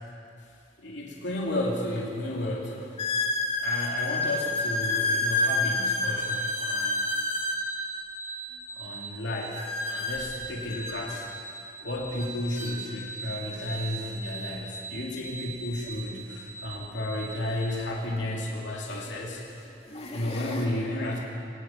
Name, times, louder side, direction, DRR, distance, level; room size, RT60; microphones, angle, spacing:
voice 1, 0.8-2.9 3.6-7.0 8.7-11.3 11.8-19.4 20.1-21.2, left 1 dB, 65° left, -3 dB, 3.1 m, -32 dB
sound 1, 1.3-1.4 2.0-2.1 3.0-7.6 9.6-11.2 12.2-12.3 12.6-12.7 13.5-13.6 15.8-15.9 18.0-18.1 18.9-19.2 19.7-20.7, left 2 dB, 35° left, 2.6 m, -29 dB
sound 2, 6.2-17.7, right 4 dB, 20° left, 2.4 m, -41 dB
25.5 x 20.0 x 5.9 m, 2.5 s
head